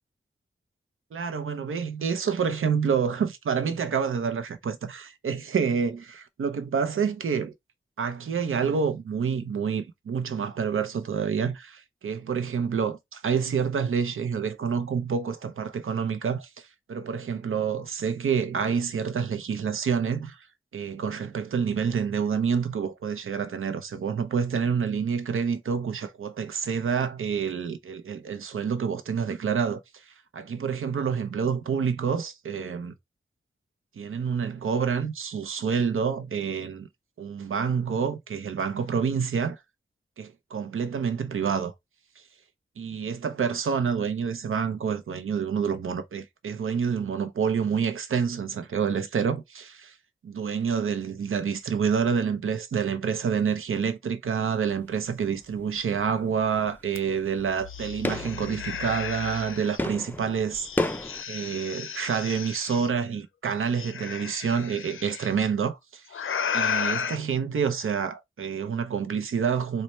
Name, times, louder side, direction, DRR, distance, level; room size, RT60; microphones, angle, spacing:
voice 1, 1.1-7.5 8.0-20.5 20.7-32.9 34.0-36.9 37.2-39.6 40.2-41.7 42.8-49.9 50.2-60.6 61.3-66.2 66.5-69.8, right 6 dB, 85° right, 0.6 m, -28 dB
sound 1, 54.7-55.1 55.4-61.2, left 2 dB, 10° left, 0.3 m, -33 dB
sound 2, 56.9-57.0 57.4-59.8 60.5-62.9 63.7-65.3 66.1-67.2, left 7 dB, 80° left, 0.5 m, -33 dB
4.1 x 2.1 x 3.1 m
wide cardioid pair, 115°, 21 cm